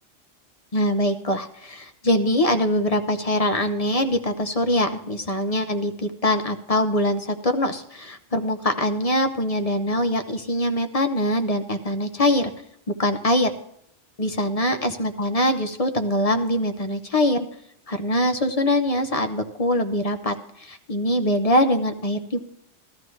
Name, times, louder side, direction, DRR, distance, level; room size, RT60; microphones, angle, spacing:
voice 1, 0.7-12.5 13.0-13.5 14.2-17.5 17.9-22.4, left 1 dB, 35° left, 7 dB, 0.8 m, -23 dB
15.5 x 12.5 x 3.2 m, 0.73 s
omnidirectional pair, 1.2 m